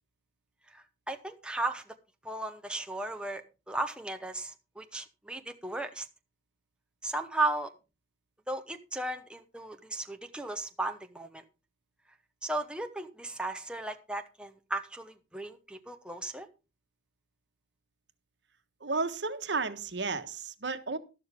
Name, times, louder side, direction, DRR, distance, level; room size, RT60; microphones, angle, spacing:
voice 1, 0.7-1.9 2.2-6.1 7.0-7.7 8.5-11.4 12.4-16.5, right 2 dB, 5° right, 0.9 m, -35 dB
voice 2, 18.8-21.0, right 4 dB, 70° right, 1.4 m, -33 dB
12.5 x 12.0 x 3.6 m
head